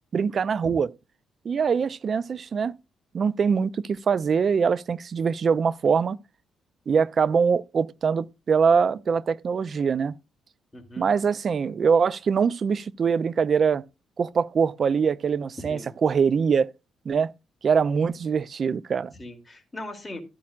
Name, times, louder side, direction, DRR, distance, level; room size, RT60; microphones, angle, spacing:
voice 1, 0.1-0.9 1.4-2.7 3.1-6.2 6.9-10.1 11.0-13.8 14.2-16.7 17.1-17.3 17.6-19.1, right 6 dB, 45° right, 0.5 m, -23 dB
voice 2, 10.7-11.1 15.6-15.9 19.1-20.2, left 1 dB, 20° left, 2.9 m, -39 dB
13.5 x 8.5 x 2.4 m
cardioid pair, 90°, 0 cm